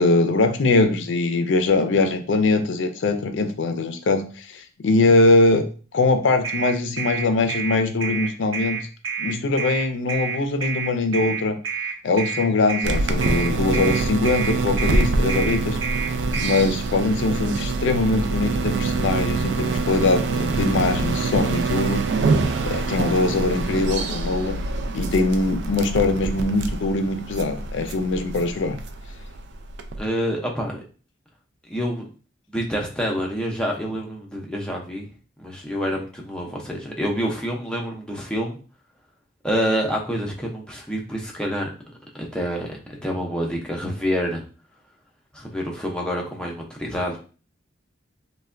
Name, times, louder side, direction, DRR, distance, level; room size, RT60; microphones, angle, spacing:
voice 1, 0.0-5.6 5.9-8.8 9.2-11.5 12.0-15.8 16.4-22.1 22.6-24.6 24.9-28.8, left 3 dB, 70° left, 8 dB, 0.4 m, -22 dB
sound 1, 6.4-16.6, right 6 dB, 90° right, 0.8 m, -28 dB
sound 2, 12.8-30.0, right 3 dB, 60° right, 0.3 m, -25 dB
voice 2, 30.0-30.8 31.7-32.0 32.5-35.1 35.4-38.6 39.4-41.7 42.3-44.4 45.3-47.2, equal, 5° left, -1 dB, 0.5 m, -27 dB
3.2 x 2.1 x 2.4 m, 0.37 s
head